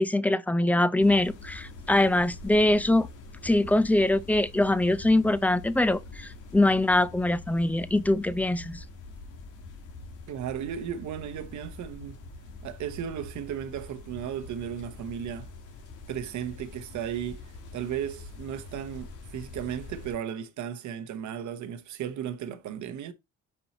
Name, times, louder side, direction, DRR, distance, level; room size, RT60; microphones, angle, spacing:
voice 1, 0.0-3.1 3.4-8.8, left 1 dB, 5° left, 0.5 m, -23 dB
sound 1, 1.0-20.1, left 3 dB, 85° left, 1.6 m, -45 dB
voice 2, 10.3-12.2 12.6-15.5 16.1-23.1, right 9 dB, 75° right, 0.9 m, -35 dB
5.3 x 4.3 x 4.1 m
cardioid pair, 90°, 30 cm